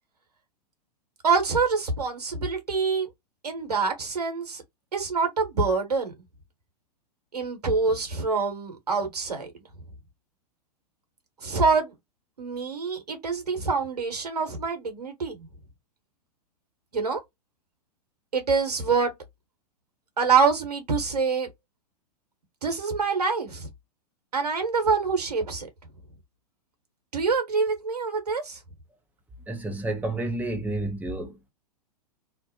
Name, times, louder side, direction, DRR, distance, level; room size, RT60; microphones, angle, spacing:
voice 1, 1.2-3.1 3.4-4.6 4.9-6.1 7.3-9.5 11.4-11.9 12.4-15.5 16.9-17.2 18.3-19.1 20.2-21.5 22.6-23.7 24.3-25.7 27.1-28.6, right 4 dB, 80° right, 1.1 m, -25 dB
voice 2, 29.5-31.5, right 2 dB, 10° right, 0.6 m, -30 dB
2.5 x 2.0 x 2.6 m
figure-of-eight pair, 105°, 20 cm